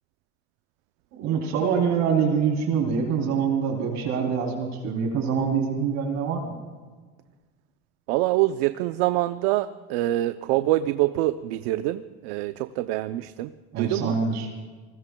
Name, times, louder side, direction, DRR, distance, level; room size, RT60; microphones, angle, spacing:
voice 1, 1.1-6.6 13.7-14.5, right 6 dB, 65° right, 1 dB, 3.2 m, -25 dB
voice 2, 8.1-13.5 13.8-14.1, right 16 dB, 80° right, 11 dB, 0.6 m, -25 dB
28.5 x 20.0 x 2.3 m, 1.4 s
supercardioid pair, 100°, 30 cm